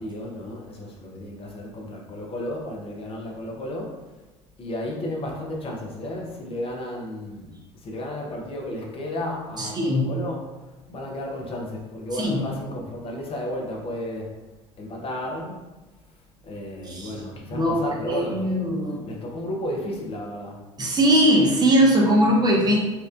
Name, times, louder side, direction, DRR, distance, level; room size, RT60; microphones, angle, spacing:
voice 1, 0.0-4.0 4.6-7.5 7.8-10.6 10.9-14.3 14.8-15.6 16.4-18.5 19.0-20.6, left 1 dB, 35° left, -1 dB, 0.8 m, -33 dB
voice 2, 9.6-10.1 12.2-12.4 16.9-17.1 17.5-19.0 20.8-22.8, equal, 25° right, -1 dB, 0.7 m, -20 dB
4.3 x 2.5 x 2.4 m, 1.2 s
figure-of-eight pair, 60°, 16 cm